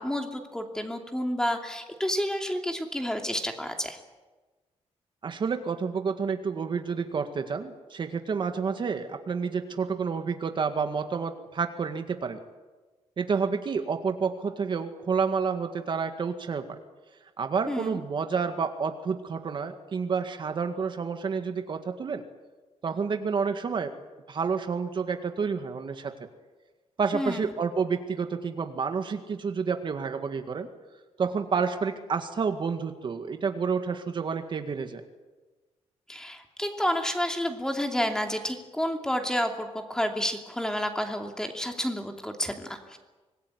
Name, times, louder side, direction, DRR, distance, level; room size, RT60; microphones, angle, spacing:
voice 1, 0.0-4.0 17.7-18.0 27.1-27.5 36.1-43.0, equal, 5° left, 4 dB, 2.8 m, -30 dB
voice 2, 5.2-12.4 13.2-16.8 17.4-22.2 22.8-23.9 24.3-26.3 27.0-30.7 31.2-35.0, right 5 dB, 45° right, 7 dB, 1.9 m, -29 dB
25.5 x 20.0 x 9.7 m, 1.2 s
wide cardioid pair, 145°, 12 cm